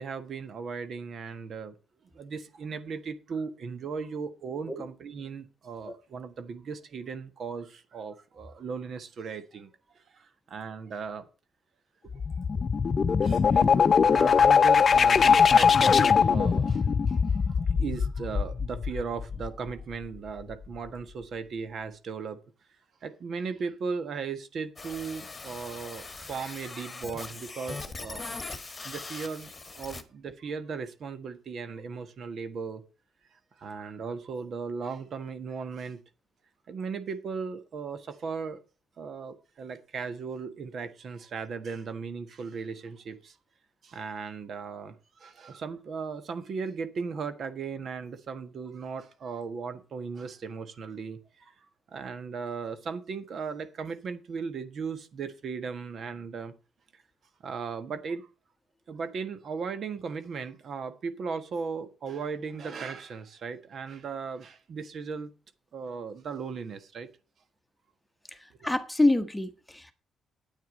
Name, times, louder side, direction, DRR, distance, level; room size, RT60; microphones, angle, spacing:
voice 1, 0.0-1.7 2.1-9.7 9.9-11.3 12.0-12.2 12.5-12.8 13.2-17.4 17.8-22.4 23.0-32.8 33.6-36.0 36.7-38.6 39.0-43.3 43.8-51.5 51.9-56.5 56.9-57.0 57.4-58.3 58.9-65.3 65.7-67.1, right 5 dB, 55° right, 1.4 m, -37 dB
sound 1, 12.1-19.7, left 6 dB, 40° left, 0.6 m, -22 dB
sound 2, 24.8-30.0, left 3 dB, 25° left, 1.5 m, -41 dB
voice 2, 68.4-69.9, left 2 dB, 5° left, 1.3 m, -26 dB
9.5 x 8.9 x 5.2 m
cardioid pair, 100°, 0 cm